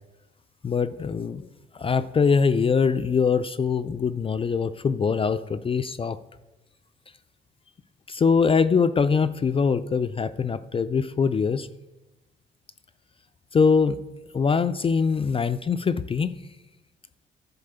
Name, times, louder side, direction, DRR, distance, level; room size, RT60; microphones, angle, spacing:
voice 1, 0.6-1.5 1.7-6.2 8.1-11.7 13.5-14.0 14.3-16.3, left 5 dB, 30° left, 11 dB, 0.3 m, -23 dB
10.5 x 4.2 x 6.7 m, 1.0 s
cardioid pair, 90°, 20 cm